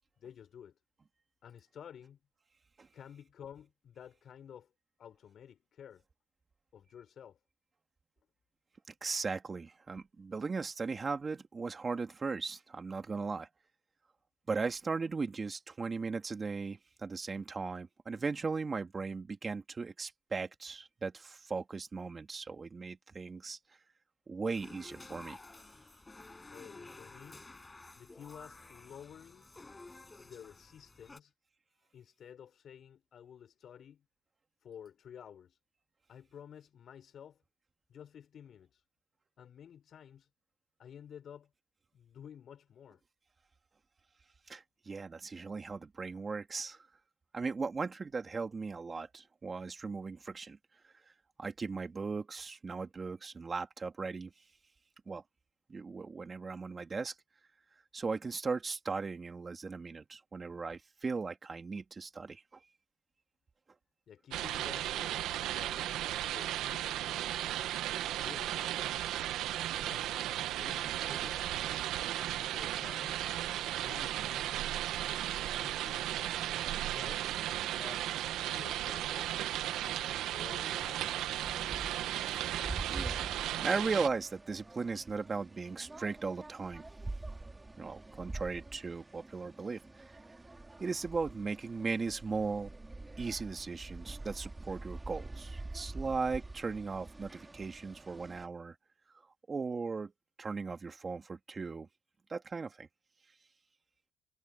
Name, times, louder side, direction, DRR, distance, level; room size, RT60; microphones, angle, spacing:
voice 1, 0.2-0.8 1.4-2.2 2.9-4.7 5.0-6.0 6.7-7.4 26.4-27.4 28.0-29.5 30.2-31.3 31.9-34.0 34.6-35.6 36.1-37.4 37.9-38.8 39.4-40.3 40.8-41.5 41.9-43.0 64.1-67.4 68.0-69.0 69.8-71.6 72.4-73.2 73.8-74.8 75.4-77.3 77.7-78.1 78.5-79.4 79.8-81.3, left 8 dB, 60° left, 6.5 m, -52 dB
voice 2, 9.0-13.5 14.5-23.6 24.3-25.4 44.5-46.8 47.3-50.6 51.4-54.3 55.1-55.2 55.7-57.1 57.9-62.4 81.7-81.9 82.3-86.8 87.8-90.0 90.8-92.7 93.2-98.8 99.5-100.1 100.4-101.9 102.3-102.9, right 4 dB, 35° right, 2.9 m, -37 dB
sound 1, 24.5-31.2, left 2 dB, 20° left, 7.5 m, -52 dB
sound 2, 64.3-84.1, right 13 dB, 90° right, 1.4 m, -35 dB
sound 3, 80.9-98.5, right 2 dB, 20° right, 3.4 m, -46 dB
cardioid pair, 90°, 0 cm